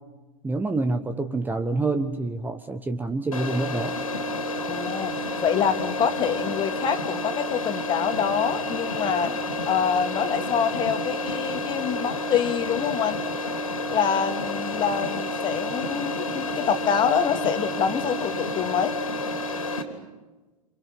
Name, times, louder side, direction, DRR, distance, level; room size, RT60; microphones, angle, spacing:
voice 1, 0.4-4.0, right 3 dB, 10° right, 9 dB, 1.2 m, -27 dB
sound 1, 3.3-19.8, left 2 dB, 70° left, 3.5 m, -30 dB
voice 2, 4.7-9.3 9.7-13.2 13.9-19.0, left 7 dB, 25° left, 7 dB, 2.2 m, -26 dB
29.0 x 28.0 x 6.0 m, 1.2 s
figure-of-eight pair, 95°, 18 cm